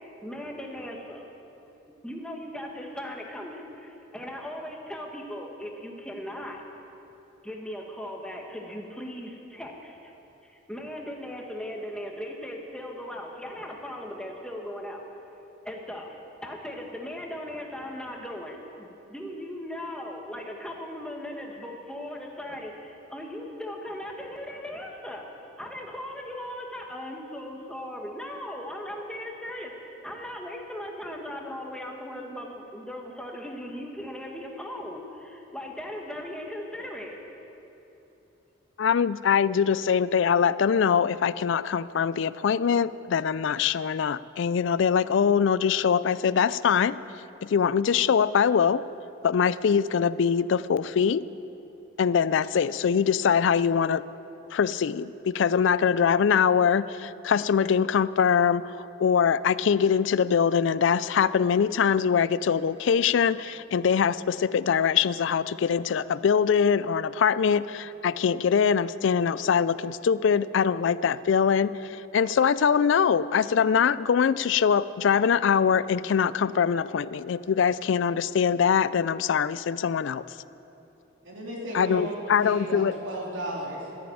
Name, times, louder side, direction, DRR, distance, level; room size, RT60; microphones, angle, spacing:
voice 1, 0.2-1.2 2.0-6.6 7.4-10.1 10.4-15.0 15.6-25.2 25.6-37.2, left 1 dB, 5° left, 0 dB, 1.5 m, -38 dB
voice 2, 38.8-47.0 47.4-48.8 49.2-51.3 52.0-54.0 54.5-80.2 81.7-82.9, left 7 dB, 70° left, 17 dB, 0.4 m, -23 dB
voice 3, 81.2-84.0, right 1 dB, 75° right, -2 dB, 3.4 m, -34 dB
13.5 x 11.0 x 8.8 m, 3.0 s
head